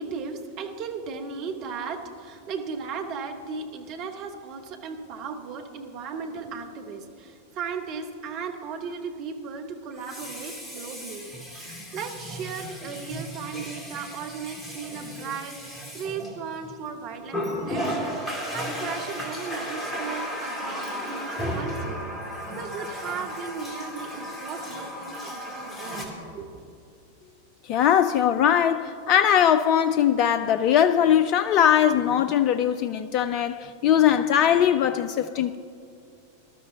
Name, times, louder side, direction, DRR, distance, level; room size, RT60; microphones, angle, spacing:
voice 1, 0.0-15.6 15.9-22.0 22.5-26.7, right 5 dB, 40° right, 1.2 m, -36 dB
Water tap faucet, 6.3-6.5 9.9-16.7 17.3-26.0, equal, 15° left, 2.3 m, -34 dB
voice 2, 27.6-35.6, left 9 dB, 40° left, 0.3 m, -21 dB
20.0 x 12.5 x 2.9 m
figure-of-eight pair, 90°, 0 cm